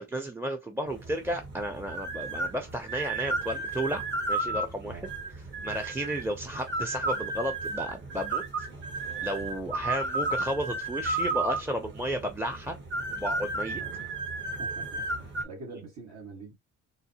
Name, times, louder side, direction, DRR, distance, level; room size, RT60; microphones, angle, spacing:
voice 1, 0.0-4.0 4.3-5.0 5.6-8.7 9.2-12.8 13.1-13.8, right 1 dB, 10° right, 0.5 m, -33 dB
sound 1, 0.9-15.4, right 2 dB, 40° right, 1.2 m, -33 dB
voice 2, 4.8-5.2 13.7-14.2 14.6-16.6, right 3 dB, 65° right, 1.7 m, -45 dB
3.8 x 2.1 x 2.8 m
cardioid pair, 90°, 30 cm